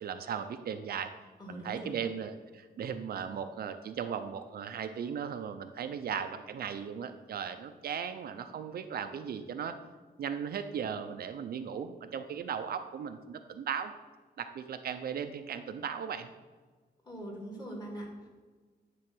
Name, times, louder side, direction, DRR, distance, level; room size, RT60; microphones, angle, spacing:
voice 1, 0.0-1.1 1.5-9.8 10.2-13.9 14.4-16.3, right 7 dB, 65° right, 8 dB, 0.5 m, -37 dB
voice 2, 1.4-2.1 17.0-18.3, right 1 dB, 25° left, -2 dB, 2.4 m, -42 dB
10.5 x 3.7 x 6.1 m, 1.4 s
wide cardioid pair, 150°, 17 cm